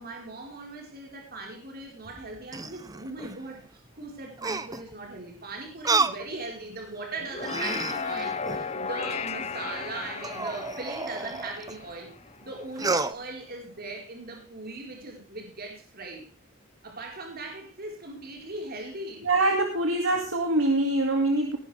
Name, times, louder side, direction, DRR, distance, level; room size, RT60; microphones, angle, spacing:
voice 1, 0.0-12.1 12.4-16.3 16.8-19.3, right 2 dB, 50° right, 1 dB, 4.4 m, -39 dB
sound 1, 2.0-3.4 4.4-4.9 5.8-6.2 6.8-6.9 7.4-8.7 10.2-11.8 12.8-13.1, right 3 dB, 20° right, 0.8 m, -30 dB
sound 2, 7.2-12.7, left 5 dB, 30° left, 0.9 m, -35 dB
voice 2, 19.2-21.6, right 2 dB, 85° right, 3 dB, 2.2 m, -24 dB
18.0 x 11.5 x 3.4 m, 0.36 s
head